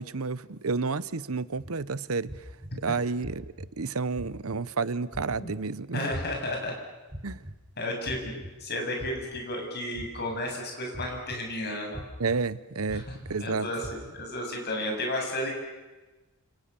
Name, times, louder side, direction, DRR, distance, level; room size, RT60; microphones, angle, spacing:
voice 1, 0.0-2.3 2.8-6.1 7.2-7.4 12.2-13.7, right 4 dB, 70° right, 17 dB, 0.9 m, -31 dB
sound 1, 1.6-1.7 2.3-2.7 3.2-3.7 4.2-4.6 5.1-5.5 6.1-6.5 7.1-7.5 8.0-8.5 9.0-9.4 9.9-10.4 10.9-11.4 11.9-12.4 12.9-13.3 13.8-14.2, equal, 25° right, 5.5 m, -40 dB
voice 2, 5.9-6.7 7.8-12.0 12.9-13.0 13.4-15.6, left 1 dB, 50° left, 2 dB, 7.6 m, -33 dB
29.0 x 28.5 x 7.0 m, 1.2 s
head